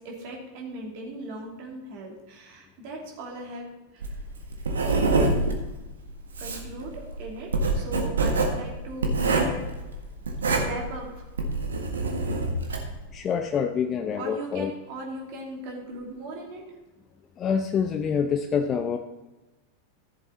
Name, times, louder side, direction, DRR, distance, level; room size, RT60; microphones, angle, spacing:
voice 1, 0.0-3.7 3.9-4.2 5.2-5.5 6.4-9.2 10.6-11.3 14.2-16.6, right 2 dB, 50° right, -1 dB, 3.0 m, -38 dB
Writing, 4.0-13.0, right 3 dB, 70° right, 1.6 m, -26 dB
voice 2, 13.1-14.7 17.4-19.0, left 7 dB, 25° left, 6 dB, 0.6 m, -26 dB
14.5 x 7.3 x 4.1 m, 1.1 s
figure-of-eight pair, 90°, 0 cm